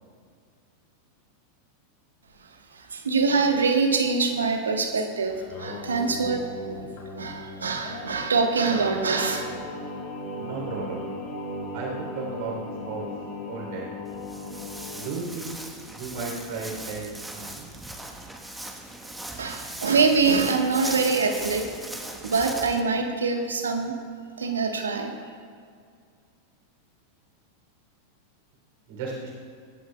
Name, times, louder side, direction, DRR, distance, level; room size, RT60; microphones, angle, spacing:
voice 1, 2.9-6.8 7.2-9.6 19.4-21.7 22.2-23.9 24.4-25.1, right 4 dB, 70° right, 4 dB, 1.4 m, -24 dB
Singing, 5.3-15.1, left 1 dB, 45° left, 3.4 m, -37 dB
voice 2, 10.3-11.1 11.7-12.6 12.9-13.1 13.5-13.9 14.9-15.5 15.9-17.7 28.9-29.3, right 4 dB, 50° right, -2 dB, 3.6 m, -34 dB
Walk footsteps, 14.0-22.8, right 1 dB, 5° right, 1.4 m, -39 dB
25.5 x 11.5 x 2.4 m, 2.2 s
figure-of-eight pair, 90°, 0 cm